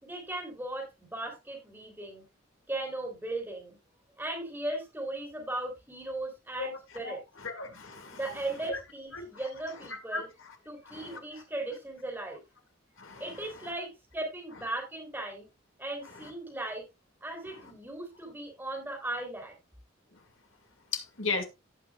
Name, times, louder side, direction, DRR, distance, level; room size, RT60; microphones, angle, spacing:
voice 1, 0.0-2.2 2.7-3.8 4.2-7.2 8.1-10.3 10.7-12.4 13.2-15.5 15.8-16.8 17.2-19.5, right 2 dB, 10° right, 3.5 m, -37 dB
voice 2, 7.4-8.2 8.7-8.8 9.1-9.2 10.1-10.2 13.0-13.2 20.9-21.4, left 4 dB, 85° left, 2.3 m, -34 dB
17.0 x 6.0 x 2.4 m
head